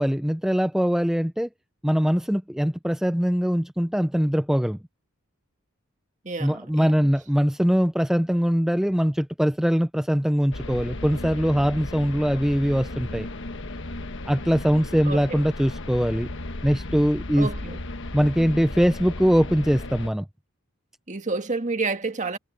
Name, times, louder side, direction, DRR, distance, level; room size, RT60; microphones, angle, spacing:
voice 1, 0.0-1.5 1.8-4.8 6.4-13.3 14.3-16.3 16.6-17.5 18.1-20.2, equal, ahead, 0.4 m, -22 dB
voice 2, 6.2-7.1 15.0-15.4 17.4-17.8 21.1-22.4, right 3 dB, 35° right, 1.8 m, -30 dB
sound 1, 10.5-20.1, left 2 dB, 60° left, 1.4 m, -35 dB
head